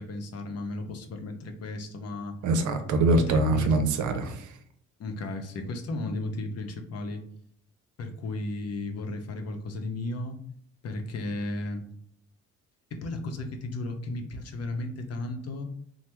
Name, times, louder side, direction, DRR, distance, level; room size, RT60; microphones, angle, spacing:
voice 1, 0.0-2.4 3.1-3.7 5.0-7.2 8.0-10.4 10.8-11.8 13.0-15.7, left 2 dB, 55° left, 5 dB, 0.7 m, -34 dB
voice 2, 2.4-4.5, right 2 dB, 75° right, 7 dB, 0.6 m, -24 dB
2.9 x 2.0 x 3.4 m, 0.67 s
cardioid pair, 90°, 30 cm